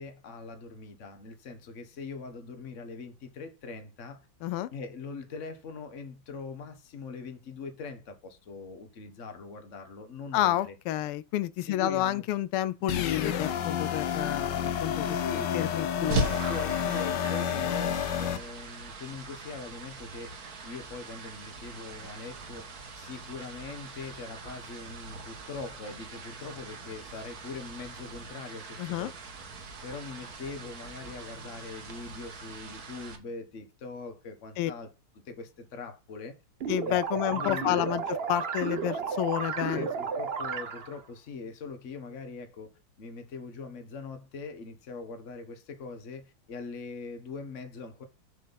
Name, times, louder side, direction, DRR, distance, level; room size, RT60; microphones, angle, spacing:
voice 1, 0.0-4.2 4.7-10.7 11.7-12.2 15.1-15.6 16.0-22.7 23.0-29.1 29.8-34.9 35.2-36.4 36.8-37.8 39.7-42.7 43.0-48.0, left 4 dB, 40° left, 1.4 m, -42 dB
voice 2, 10.3-15.2 15.5-16.2 28.8-29.1 34.6-34.7 36.7-38.0 38.3-39.9, left 13 dB, 85° left, 1.5 m, -30 dB
sound 1, 12.9-18.4, left 9 dB, 60° left, 1.4 m, -30 dB
sound 2, 16.1-33.2, right 3 dB, 45° right, 1.8 m, -40 dB
sound 3, 36.6-41.0, right 5 dB, 75° right, 0.5 m, -33 dB
8.0 x 7.5 x 4.0 m
omnidirectional pair, 2.4 m